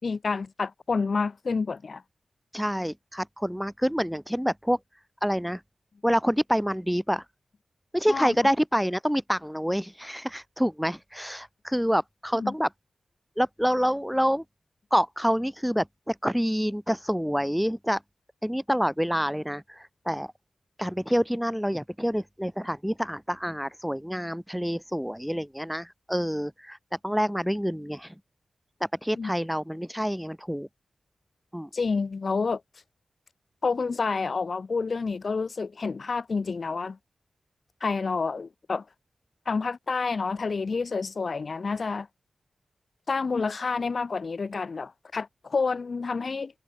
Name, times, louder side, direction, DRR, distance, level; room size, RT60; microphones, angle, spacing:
voice 1, 0.0-2.0 8.1-8.4 12.4-12.5 29.2-29.3 31.7-32.6 33.6-37.0 37.8-38.8 39.5-42.1 43.1-46.5, left 4 dB, 60° left, 7.6 m, -29 dB
voice 2, 2.5-4.8 5.2-5.6 6.0-7.2 7.9-12.7 13.4-14.4 14.9-18.0 18.4-20.3 20.8-26.8 27.0-28.1 28.8-30.7 31.5-31.7, equal, ahead, 6.6 m, -27 dB
cardioid pair, 55°, 0 cm